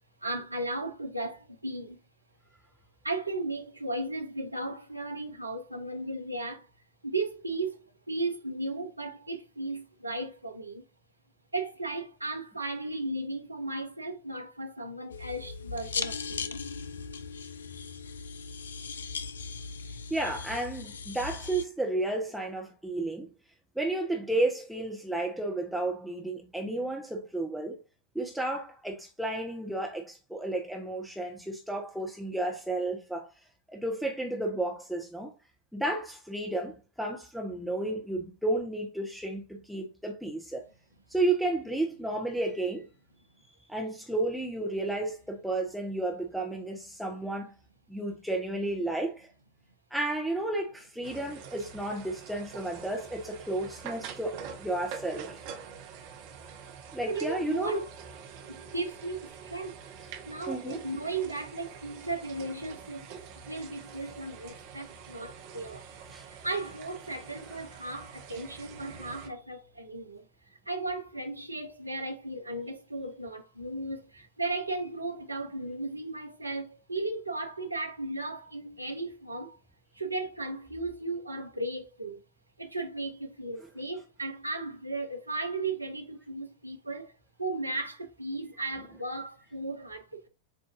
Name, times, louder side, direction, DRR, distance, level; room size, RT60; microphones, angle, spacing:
voice 1, 0.2-2.0 3.0-6.7 7.0-10.8 11.5-16.6 57.1-57.8 58.5-59.8 60.3-63.1 63.5-65.8 66.3-70.3 70.7-79.6 79.9-82.2 82.6-87.1 87.4-90.3, right 2 dB, 85° right, 0.7 m, -35 dB
sound 1, 15.1-21.7, left 5 dB, 70° left, 0.4 m, -38 dB
voice 2, 20.1-23.3 23.8-27.8 28.1-33.3 33.7-35.3 35.7-40.7 41.1-42.9 43.7-47.5 47.9-49.3 49.9-55.5 56.9-57.8 60.5-60.8 66.1-66.2, right 2 dB, ahead, 0.8 m, -32 dB
sound 2, 51.0-69.3, right 6 dB, 45° right, 0.8 m, -46 dB
7.6 x 2.6 x 2.5 m
figure-of-eight pair, 90°, 0 cm